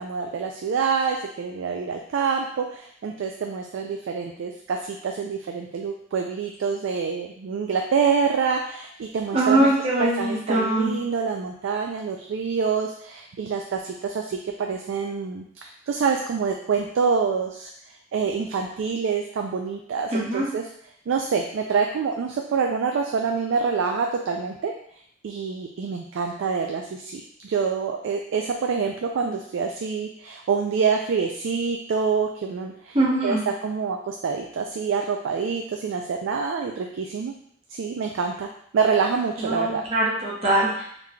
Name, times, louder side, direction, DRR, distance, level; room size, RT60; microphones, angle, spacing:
voice 1, 0.0-9.7 10.0-17.7 18.1-20.6 21.1-24.7 25.2-33.0 33.2-37.3 37.7-38.5 38.7-39.8, right 5 dB, 70° right, 2 dB, 0.3 m, -26 dB
voice 2, 9.3-10.9 20.1-20.5 32.9-33.4 39.4-40.9, right 1 dB, 35° right, -5 dB, 1.0 m, -22 dB
3.8 x 3.1 x 2.2 m, 0.65 s
head